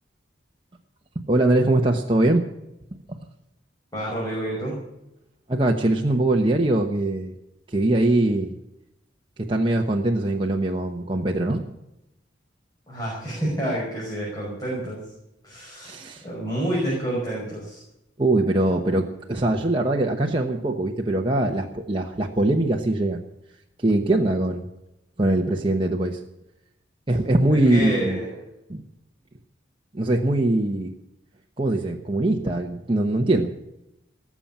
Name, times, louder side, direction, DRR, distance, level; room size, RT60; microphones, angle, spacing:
voice 1, 1.3-2.5 3.1-3.2 5.5-7.3 7.7-8.5 9.4-11.6 15.8-16.2 18.2-23.2 23.8-24.7 25.2-26.2 27.1-28.2 28.7-28.8 29.9-30.9 31.6-33.5, right 1 dB, 30° right, 0 dB, 1.0 m, -22 dB
voice 2, 3.9-4.8 12.9-15.1 15.4-16.0 16.2-17.8 27.5-28.3, right 1 dB, 20° left, -5 dB, 5.7 m, -28 dB
18.5 x 7.4 x 8.7 m, 0.88 s
head